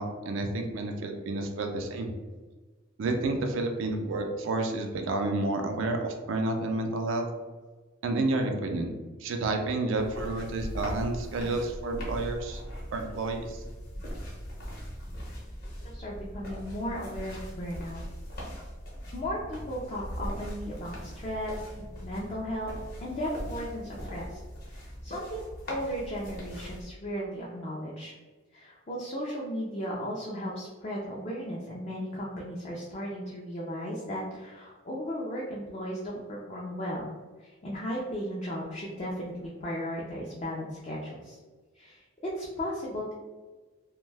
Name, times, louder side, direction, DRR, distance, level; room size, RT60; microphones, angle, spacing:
voice 1, 0.0-2.1 3.0-7.3 8.0-8.9 9.2-12.6 12.9-13.6, right 2 dB, 70° right, 4 dB, 0.4 m, -30 dB
sound 1, 10.0-26.8, equal, 50° left, 0.8 m, -40 dB
voice 2, 15.8-18.0 19.1-22.7 23.0-24.4 24.7-28.1 28.5-41.4 41.7-43.1, equal, 30° left, -5 dB, 0.4 m, -36 dB
2.5 x 2.2 x 3.2 m, 1.3 s
head